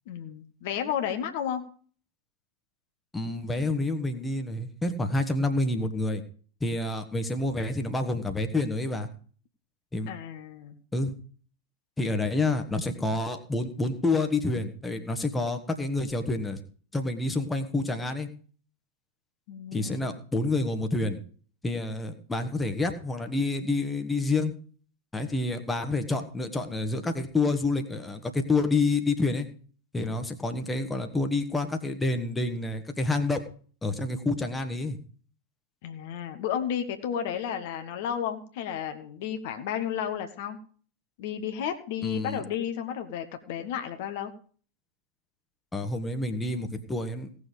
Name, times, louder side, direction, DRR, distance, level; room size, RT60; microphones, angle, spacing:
voice 1, 0.1-1.6 10.1-10.8 19.5-20.1 35.8-40.6 41.2-44.3, left 9 dB, 50° left, 7 dB, 1.4 m, -32 dB
voice 2, 3.1-6.2 6.6-9.1 9.9-10.1 10.9-11.1 12.0-16.6 16.9-18.3 19.7-21.2 21.6-24.5 25.1-29.5 29.9-33.4 33.8-35.0 42.0-42.4 45.7-47.3, left 2 dB, 10° left, 6 dB, 1.6 m, -28 dB
17.5 x 6.9 x 5.1 m, 0.43 s
figure-of-eight pair, 90°, 0 cm